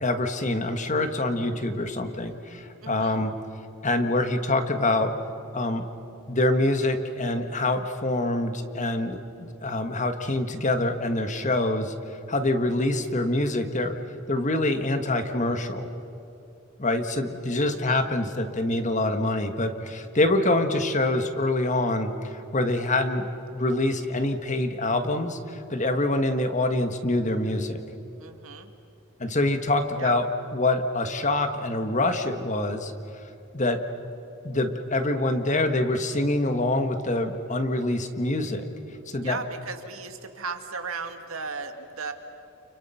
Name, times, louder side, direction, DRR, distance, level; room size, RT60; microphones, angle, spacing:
voice 1, 0.0-3.3 3.8-5.1 5.5-5.8 6.3-11.9 12.3-13.9 14.3-15.9 16.8-23.3 23.5-27.8 29.2-30.3 30.5-32.9 33.5-33.8 34.4-38.6 39.1-39.4, left 2 dB, 35° left, 7 dB, 1.6 m, -25 dB
voice 2, 2.8-3.2 17.7-18.1 28.2-28.7 30.0-30.2 39.2-42.1, right 4 dB, 85° right, 6 dB, 2.1 m, -36 dB
30.0 x 29.5 x 5.8 m, 2.9 s
head